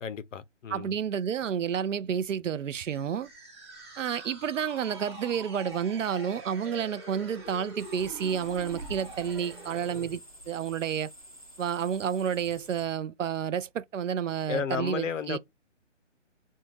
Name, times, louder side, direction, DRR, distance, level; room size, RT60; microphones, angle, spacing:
voice 1, 0.0-1.0 14.5-15.4, left 6 dB, 85° left, 0.7 m, -33 dB
voice 2, 0.7-3.3 4.0-10.2 10.5-11.1 11.6-15.4, right 8 dB, 85° right, 0.6 m, -30 dB
Time Travel - Present, 2.7-10.2, right 2 dB, 20° right, 0.9 m, -45 dB
sound 1, 7.8-12.9, right 1 dB, 30° left, 0.4 m, -48 dB
2.6 x 2.3 x 3.0 m
hypercardioid pair, 175°, 37 cm